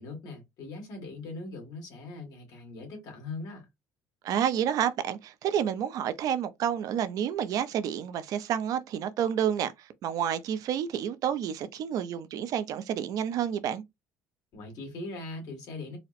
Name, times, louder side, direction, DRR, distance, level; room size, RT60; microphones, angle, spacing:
voice 1, 0.0-3.7 14.5-16.0, left 2 dB, 60° left, 1.7 m, -40 dB
voice 2, 4.2-13.8, right 9 dB, 55° right, 0.5 m, -29 dB
4.1 x 2.0 x 2.5 m
cardioid pair, 130°, 7 cm